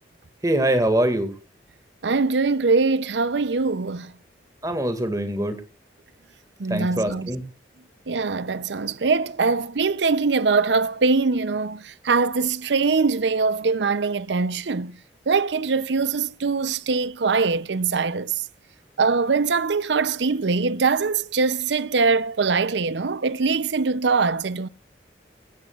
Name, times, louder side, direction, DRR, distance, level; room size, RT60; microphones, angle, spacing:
voice 1, 0.4-1.3 4.6-5.6 6.7-7.4, right 1 dB, 20° right, 2.0 m, -23 dB
voice 2, 2.0-4.1 6.6-7.3 8.1-15.0 15.3-18.3 19.0-24.7, right 4 dB, 85° right, 0.6 m, -22 dB
17.0 x 17.0 x 2.4 m
head